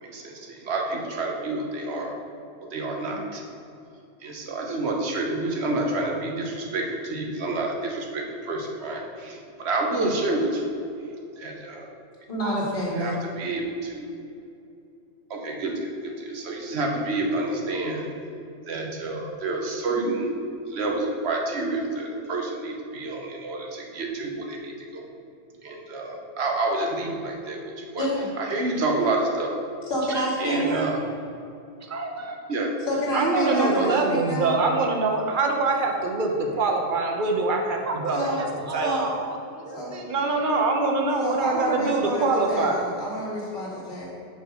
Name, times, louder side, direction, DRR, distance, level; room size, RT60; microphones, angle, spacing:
voice 1, 0.0-2.1 2.7-3.4 4.2-10.6 11.4-11.9 13.0-14.1 15.3-18.1 18.7-20.3 20.7-25.1 25.6-28.1 28.4-29.5 30.4-31.0 32.5-32.7 33.4-33.9, right 2 dB, 70° right, 1 dB, 1.2 m, -29 dB
voice 2, 12.3-13.1 28.0-28.3 29.9-30.8 32.9-34.5 38.1-38.4 38.8-39.1 39.7-39.9 41.2-44.1, equal, 50° left, -6 dB, 2.1 m, -28 dB
voice 3, 30.0-30.7 31.8-32.4 37.8-40.7, right 3 dB, 25° right, 2 dB, 0.4 m, -35 dB
voice 4, 33.1-38.4 38.7-38.9 40.1-42.8, right 3 dB, 50° right, 2 dB, 0.9 m, -24 dB
5.9 x 5.3 x 5.1 m, 2.6 s
omnidirectional pair, 1.2 m